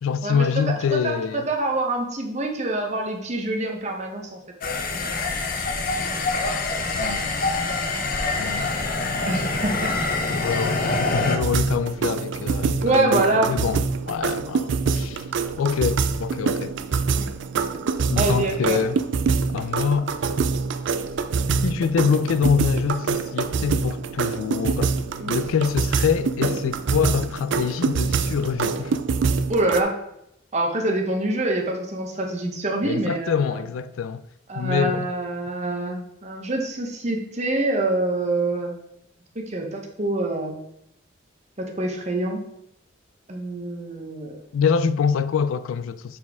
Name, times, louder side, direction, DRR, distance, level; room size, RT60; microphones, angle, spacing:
voice 1, 0.0-1.5 6.9-7.4 8.4-8.7 10.3-15.3 15.6-16.7 18.1-19.0 19.5-20.1 21.6-25.0 25.3-29.0 32.8-34.2 34.5-35.1 44.5-46.2, left 6 dB, 85° left, 0.3 m, -25 dB
voice 2, 1.0-4.4 9.2-9.9 12.8-13.5 17.2-17.3 18.2-18.8 25.2-25.3 29.5-29.9 30.5-33.6 34.5-38.7 39.3-40.6 41.6-42.4 43.3-44.4, right 2 dB, 35° right, 1.0 m, -25 dB
sound 1, 4.6-11.4, left 3 dB, 45° left, 0.6 m, -25 dB
sound 2, 11.4-29.8, right 5 dB, 60° right, 0.4 m, -25 dB
6.9 x 4.2 x 3.5 m
head